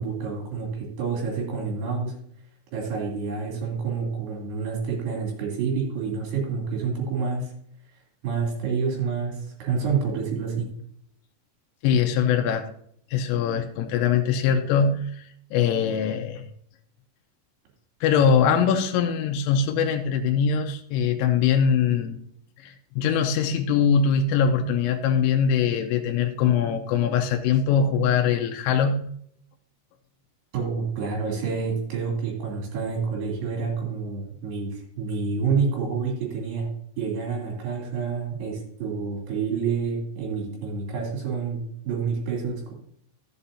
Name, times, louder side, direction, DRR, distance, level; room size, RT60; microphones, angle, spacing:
voice 1, 0.0-2.1 2.7-7.5 8.2-10.6 30.5-36.7 37.0-42.7, right 5 dB, 55° right, -2 dB, 4.7 m, -28 dB
voice 2, 11.8-12.7 13.1-15.2 15.5-16.5 18.0-22.2 22.6-29.1, left 7 dB, 85° left, 4 dB, 3.3 m, -22 dB
13.0 x 7.8 x 2.7 m, 0.66 s
omnidirectional pair, 5.8 m